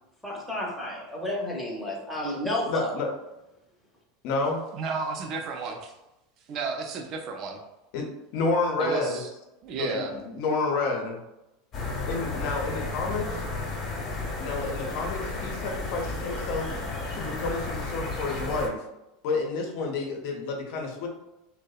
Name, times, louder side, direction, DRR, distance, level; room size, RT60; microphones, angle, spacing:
voice 1, 0.2-2.9, left 1 dB, 5° left, -4 dB, 0.7 m, -31 dB
voice 2, 2.7-3.1 4.2-4.6 7.9-8.1 8.3-9.2 9.7-11.2 12.1-13.4 14.4-16.7 17.1-18.8 19.2-21.1, left 3 dB, 65° left, 2 dB, 0.6 m, -29 dB
voice 3, 4.7-5.8 6.5-7.6 8.8-9.3 9.6-10.1, right 4 dB, 50° right, 3 dB, 0.4 m, -32 dB
sound 1, 11.7-18.7, left 2 dB, 40° left, 0.8 m, -33 dB
2.6 x 2.0 x 2.3 m, 0.92 s
hypercardioid pair, 100°, 0 cm